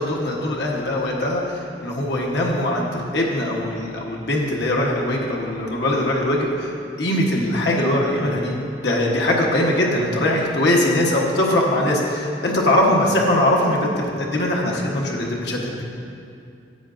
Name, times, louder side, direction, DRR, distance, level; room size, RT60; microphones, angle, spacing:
voice 1, 0.0-8.5 8.8-15.8, left 1 dB, 75° left, -2 dB, 1.2 m, -21 dB
10.5 x 8.5 x 2.6 m, 2.5 s
head